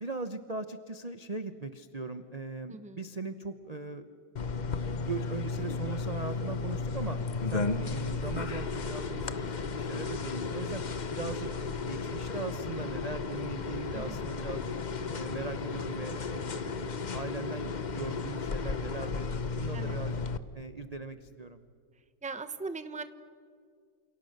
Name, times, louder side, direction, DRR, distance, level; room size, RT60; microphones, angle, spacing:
voice 1, 0.0-4.1 5.0-7.2 7.5-10.8 11.1-11.5 11.9-14.7 15.1-16.9 17.1-19.3 19.5-20.2 20.5-21.6, right 4 dB, 40° right, 9 dB, 0.5 m, -39 dB
sound 1, 4.4-20.4, left 4 dB, 65° left, 0.4 m, -34 dB
voice 2, 22.2-23.0, right 4 dB, 5° right, 10 dB, 0.7 m, -39 dB
28.5 x 28.5 x 6.7 m, 2.1 s
omnidirectional pair, 2.2 m